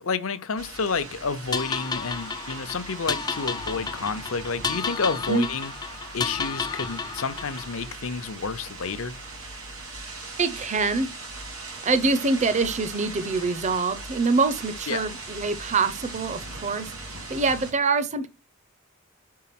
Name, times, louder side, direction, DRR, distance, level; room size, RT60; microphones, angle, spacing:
voice 1, 0.0-5.7 6.1-9.2 14.9-15.0, left 4 dB, 70° left, 0.7 m, -30 dB
sound 1, 0.6-17.7, right 3 dB, 80° right, 2.7 m, -39 dB
sound 2, 1.5-7.8, left 5 dB, 20° left, 0.5 m, -32 dB
voice 2, 10.4-11.1 11.8-18.3, right 4 dB, 35° right, 0.6 m, -25 dB
4.7 x 4.7 x 5.9 m
head